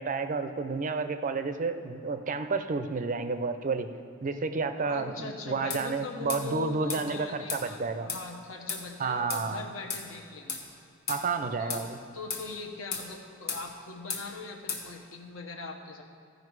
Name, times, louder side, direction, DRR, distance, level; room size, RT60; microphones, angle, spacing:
voice 1, 0.0-3.9 4.2-7.2 7.5-8.1 9.0-9.6 11.1-12.0, right 4 dB, 40° right, 9 dB, 0.4 m, -31 dB
voice 2, 4.8-10.6 11.6-16.0, left 4 dB, 75° left, 2 dB, 1.0 m, -41 dB
sound 1, 5.7-5.8 6.3-6.4 6.9-7.0 7.5-7.6 8.1-8.2 8.7-8.8 9.3-9.4 9.9-10.0 10.5-10.6 11.1-11.2 11.7-11.9 12.3-12.5 12.9-13.1 13.5-13.6 14.1-14.2 14.7-14.8, left 5 dB, 50° left, 1.1 m, -34 dB
14.5 x 5.2 x 4.7 m, 2.3 s
head